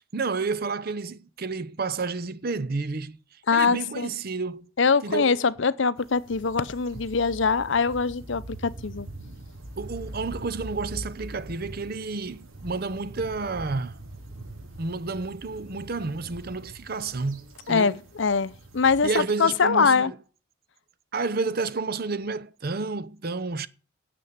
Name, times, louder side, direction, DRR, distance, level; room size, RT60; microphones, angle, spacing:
voice 1, 0.1-3.2 3.5-4.7 5.0-5.4 9.8-14.0 14.8-18.0 19.0-20.1 21.1-23.7, right 4 dB, 45° right, 0.7 m, -30 dB
voice 2, 3.5-4.1 4.8-9.1 17.7-20.1, left 5 dB, 60° left, 0.6 m, -23 dB
sound 1, 6.0-19.2, right 1 dB, 90° right, 3.9 m, -42 dB
10.0 x 6.9 x 8.7 m
head